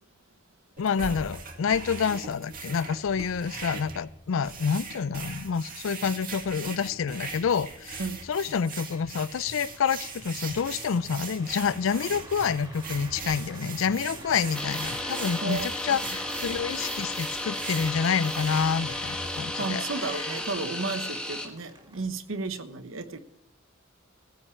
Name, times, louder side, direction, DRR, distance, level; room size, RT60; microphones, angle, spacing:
voice 1, 0.8-8.0 8.3-19.8, left 6 dB, 70° left, 19 dB, 0.4 m, -28 dB
sound 1, 0.8-19.4, right 4 dB, 45° right, 2.0 m, -40 dB
sound 2, 8.1-22.0, right 1 dB, 20° right, 2.6 m, -48 dB
sound 3, 14.5-21.5, left 2 dB, 5° left, 1.5 m, -33 dB
voice 2, 15.4-16.0 19.6-23.2, right 3 dB, 70° right, 10 dB, 1.0 m, -33 dB
15.5 x 5.6 x 9.6 m, 0.82 s
head